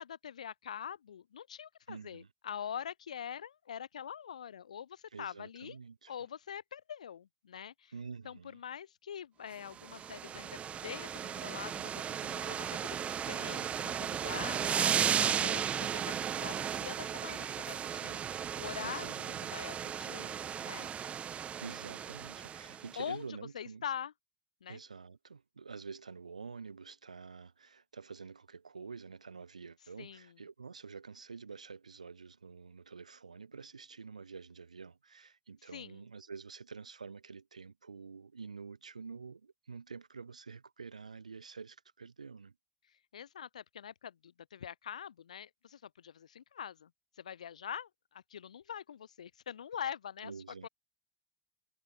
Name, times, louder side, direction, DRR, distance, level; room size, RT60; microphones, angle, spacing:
voice 1, 0.0-5.8 6.1-7.9 8.2-14.9 15.2-18.2 18.6-19.1 19.4-20.9 22.9-24.1 24.6-24.8 30.0-30.4 35.7-36.0 42.9-50.3 50.6-50.7, left 8 dB, 80° left, 1.7 m, -44 dB
voice 2, 1.9-2.3 5.1-6.1 7.9-8.6 14.3-15.0 18.8-19.5 21.6-23.8 24.7-42.5 50.2-50.7, right 5 dB, 90° right, 1.4 m, -48 dB
sound 1, 9.7-22.9, right 8 dB, 35° right, 1.7 m, -35 dB
figure-of-eight pair, 75°, 4 cm